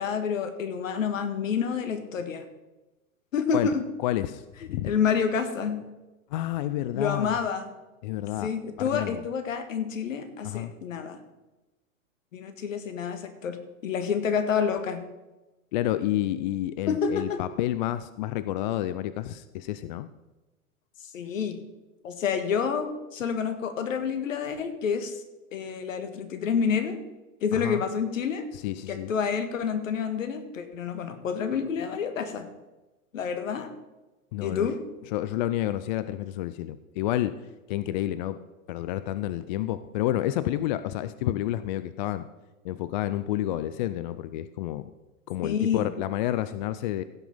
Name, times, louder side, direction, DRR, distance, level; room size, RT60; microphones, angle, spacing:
voice 1, 0.0-2.4 3.3-3.8 4.7-5.8 6.9-7.7 8.4-11.2 12.3-15.0 16.9-17.4 21.1-21.6 22.0-25.2 25.5-27.0 27.4-28.5 28.9-32.5 33.1-33.7 34.4-34.8 45.4-45.9, left 6 dB, 65° left, 9 dB, 1.6 m, -28 dB
voice 2, 4.0-4.4 4.7-5.0 6.3-7.4 8.0-8.5 8.8-9.3 10.4-10.7 15.7-20.1 27.5-27.8 28.6-29.1 34.3-34.7 35.1-37.4 37.7-38.4 38.7-42.3 42.6-44.9 45.3-47.0, left 13 dB, 35° left, 14 dB, 0.4 m, -29 dB
16.0 x 5.9 x 5.6 m, 1.1 s
figure-of-eight pair, 105°, 42 cm